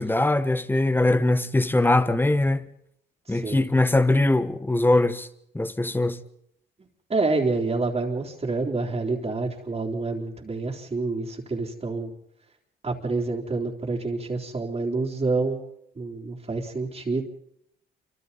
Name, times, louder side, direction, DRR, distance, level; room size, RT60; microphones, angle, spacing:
voice 1, 0.0-2.6 3.3-5.3 5.5-6.2, left 2 dB, 10° left, 1.4 m, -21 dB
voice 2, 3.3-3.7 7.1-12.1 12.8-15.6 16.0-17.2, right 3 dB, 30° right, 3.7 m, -27 dB
28.5 x 25.5 x 4.2 m
cardioid pair, 90°, 20 cm